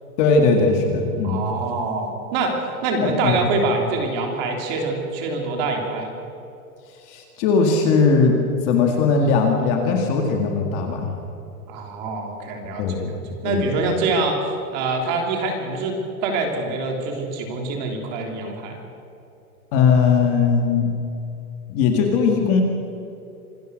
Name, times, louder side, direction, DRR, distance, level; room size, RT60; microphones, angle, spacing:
voice 1, 0.2-1.4 3.0-3.4 7.1-8.4 8.6-11.1 12.8-13.7 19.7-20.9 21.7-22.6, left 4 dB, 25° left, 2 dB, 2.0 m, -19 dB
voice 2, 1.2-2.6 2.8-6.1 11.7-18.8, right 3 dB, 30° right, 2 dB, 3.4 m, -25 dB
26.5 x 20.0 x 6.5 m, 2.7 s
supercardioid pair, 180°, 45 cm